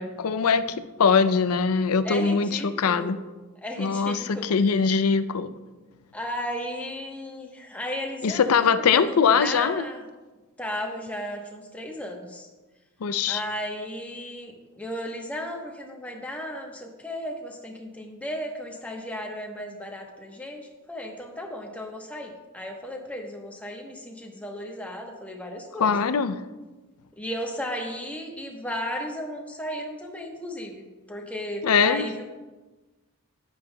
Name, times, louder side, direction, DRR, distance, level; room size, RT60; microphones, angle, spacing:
voice 1, 0.0-3.2 3.8-5.5 8.2-9.8 13.0-13.4 25.8-26.4 31.6-32.1, left 6 dB, 75° left, 11 dB, 0.5 m, -22 dB
voice 2, 2.0-3.1 3.6-4.5 6.1-10.0 10.6-12.5 13.3-25.9 27.2-32.2, equal, 5° left, 1 dB, 1.0 m, -35 dB
11.0 x 9.7 x 2.3 m, 1.2 s
head